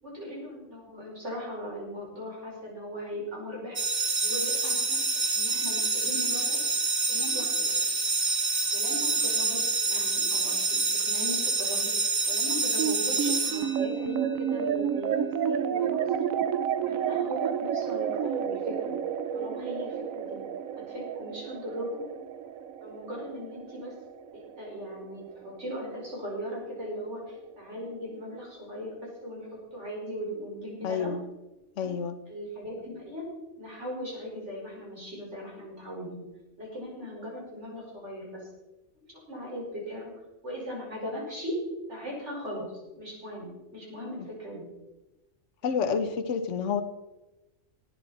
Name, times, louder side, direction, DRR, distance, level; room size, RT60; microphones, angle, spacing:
voice 1, 0.0-3.8 4.2-6.6 7.1-7.8 8.7-11.9 12.3-16.3 16.8-19.0 19.3-20.5 20.8-22.1 22.8-23.9 24.3-31.1 31.8-31.9 32.3-33.2 33.6-36.2 36.6-38.5 39.0-40.1 40.4-41.6 41.9-44.7 45.6-45.9, equal, 60° right, -3 dB, 5.6 m, -38 dB
sound 1, 3.8-14.2, right 3 dB, 35° right, 1.4 m, -27 dB
sound 2, 12.8-25.4, right 8 dB, 90° right, 1.1 m, -31 dB
voice 2, 30.8-31.2 31.8-32.1 45.6-46.8, left 6 dB, 65° left, 8 dB, 1.2 m, -28 dB
18.5 x 9.8 x 4.3 m, 1.0 s
omnidirectional pair, 1.4 m